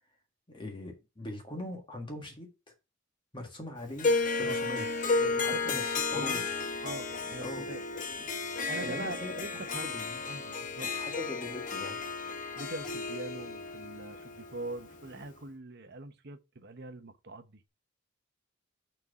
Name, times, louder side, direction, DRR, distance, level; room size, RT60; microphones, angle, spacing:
voice 1, 0.5-2.5 3.3-4.9 5.4-6.4 7.4-7.6 7.9-8.2 8.8-9.3 9.8-10.2 10.9-12.0, left 2 dB, 25° left, 1.7 m, -41 dB
Harp, 4.0-15.3, left 4 dB, 40° left, 0.9 m, -33 dB
voice 2, 5.1-5.9 6.1-6.5 6.8-7.8 8.7-10.9 11.5-11.7 12.6-17.6, right 2 dB, 55° right, 1.0 m, -43 dB
6.1 x 4.5 x 5.3 m
head